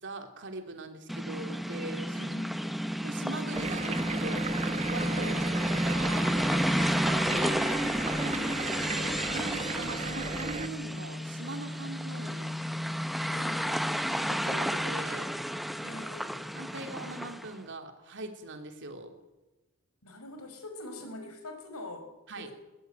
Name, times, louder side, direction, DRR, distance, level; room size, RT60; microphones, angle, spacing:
voice 1, 0.0-2.3 3.0-4.4 4.9-5.3 5.7-6.4 6.8-7.6 8.9-12.6 14.0-15.3 16.5-19.1 22.3-22.5, right 2 dB, 55° right, 5 dB, 3.3 m, -41 dB
sound 1, 1.1-17.5, equal, ahead, 0.8 m, -31 dB
voice 2, 2.1-2.8 5.0-5.6 8.2-8.9 13.3-13.9 15.8-16.5 20.0-22.5, left 1 dB, 80° left, 6 dB, 5.3 m, -44 dB
sound 2, 3.5-10.7, right 3 dB, 30° right, 1.2 m, -36 dB
20.5 x 20.0 x 9.2 m, 1.1 s
head